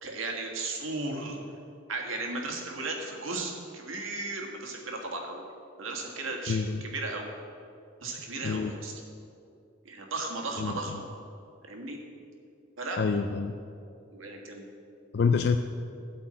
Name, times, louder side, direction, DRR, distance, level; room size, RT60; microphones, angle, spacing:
voice 1, 0.0-1.4 1.9-5.4 5.8-7.3 8.0-8.9 9.8-11.1 11.6-12.0 12.8-13.0 14.1-14.6, right 2 dB, 85° right, 1 dB, 1.8 m, -35 dB
voice 2, 6.5-6.8 8.4-8.7 10.6-10.8 13.0-13.6 15.1-15.6, left 5 dB, 55° left, 7 dB, 0.4 m, -26 dB
12.5 x 4.5 x 8.6 m, 2.4 s
head